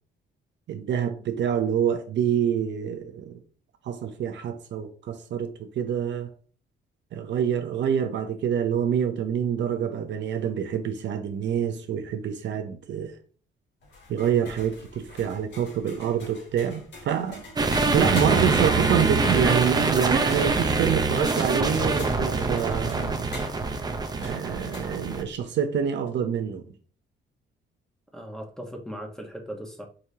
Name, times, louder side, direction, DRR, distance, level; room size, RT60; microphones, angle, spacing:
voice 1, 0.7-3.4 3.8-6.3 7.1-13.1 14.1-17.4 17.9-23.3 24.2-26.6, right 8 dB, 65° right, 0.6 m, -26 dB
sound 1, 13.8-25.4, left 2 dB, 60° left, 2.2 m, -45 dB
sound 2, 17.6-25.2, right 3 dB, 20° right, 0.6 m, -24 dB
voice 2, 28.1-29.9, equal, 5° left, 1.0 m, -38 dB
5.0 x 2.8 x 2.7 m
cardioid pair, 90°, 20 cm